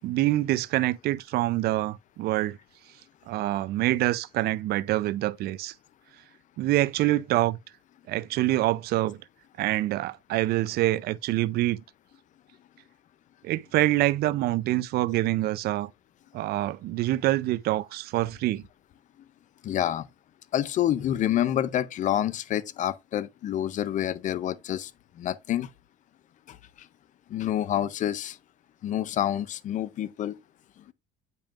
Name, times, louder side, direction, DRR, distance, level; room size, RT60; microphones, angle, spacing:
voice 1, 0.0-2.6 3.3-5.7 6.6-7.6 8.1-9.2 9.6-11.8 13.4-15.9 16.3-18.6, right 16 dB, 55° right, 0.5 m, -26 dB
voice 2, 19.6-20.1 20.5-24.9 25.2-25.7 26.5-26.6 27.3-28.4 28.8-30.4, left 11 dB, 40° left, 0.6 m, -28 dB
8.7 x 5.4 x 2.4 m
cardioid pair, 130°, 20 cm